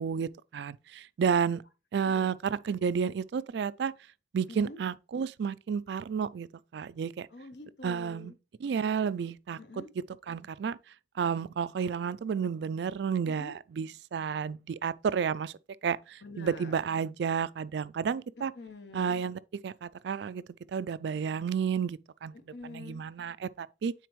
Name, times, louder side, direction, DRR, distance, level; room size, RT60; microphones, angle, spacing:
voice 1, 0.0-1.6 1.9-3.9 4.3-7.3 7.8-8.3 8.6-9.8 10.3-10.8 11.1-15.5 15.8-18.5 18.9-20.4 20.7-22.3 22.7-23.9, right 6 dB, 65° right, 0.3 m, -31 dB
voice 2, 4.5-4.8 7.3-8.4 9.6-9.9 13.2-13.6 16.2-16.7 18.4-19.2 22.3-23.0, left 2 dB, 70° left, 1.0 m, -46 dB
9.2 x 4.2 x 3.1 m
head